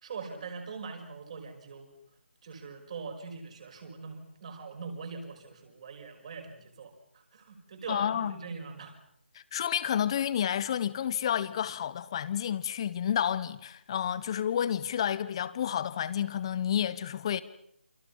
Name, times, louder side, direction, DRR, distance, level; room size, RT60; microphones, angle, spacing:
voice 1, 0.0-1.9 2.4-6.9 7.3-8.9, right 5 dB, 35° right, 5.7 m, -42 dB
voice 2, 7.9-8.4 9.3-17.4, left 9 dB, 25° left, 1.3 m, -30 dB
28.5 x 27.0 x 5.7 m
figure-of-eight pair, 160°, 6 cm